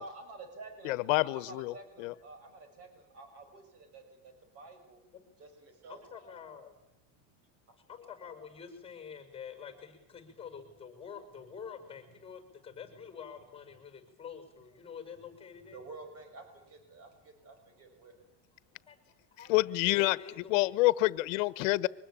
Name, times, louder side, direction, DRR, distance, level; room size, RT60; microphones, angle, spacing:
voice 1, 0.0-5.0 5.4-6.0 15.6-18.3, right 3 dB, 40° right, 7 dB, 6.2 m, -50 dB
voice 2, 0.8-1.7 2.0-2.1 19.5-20.2 20.5-21.9, left 20 dB, 85° left, 18 dB, 1.2 m, -27 dB
voice 3, 5.9-6.7 7.9-15.8 18.9-19.0 19.3-19.6 19.8-20.7 21.6-21.7, left 7 dB, 15° left, 8 dB, 5.8 m, -47 dB
24.5 x 20.5 x 8.8 m, 0.90 s
cardioid pair, 155°, 38 cm